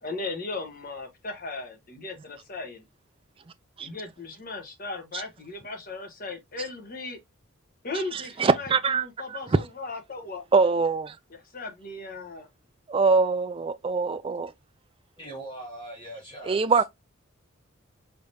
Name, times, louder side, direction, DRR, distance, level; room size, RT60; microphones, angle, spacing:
voice 1, 0.0-2.8 3.8-7.2 7.8-10.4 11.3-12.5, left 3 dB, 40° left, 1.1 m, -37 dB
voice 2, 8.1-9.0 10.5-11.1 12.9-14.5 16.5-16.8, right 4 dB, 25° right, 0.3 m, -23 dB
voice 3, 15.2-16.8, right 1 dB, 25° left, 2.1 m, -41 dB
4.7 x 3.5 x 2.7 m
head